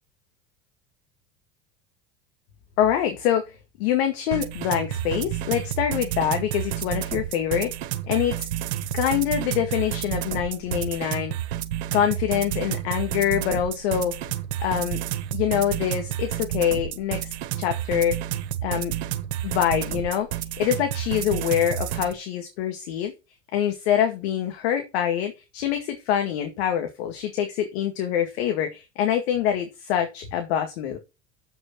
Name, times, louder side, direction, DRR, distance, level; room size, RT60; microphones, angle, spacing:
voice 1, 2.8-7.7 8.1-8.5 8.9-11.3 11.9-14.1 14.6-15.0 15.3-17.3 17.6-18.2 18.6-18.9 19.4-20.3 20.6-23.1 23.5-31.0, left 10 dB, 80° left, 6 dB, 2.0 m, -25 dB
sound 1, 4.3-22.1, right 12 dB, 80° right, 1.4 m, -30 dB
7.9 x 6.4 x 6.0 m, 0.26 s
supercardioid pair, 95°, 32 cm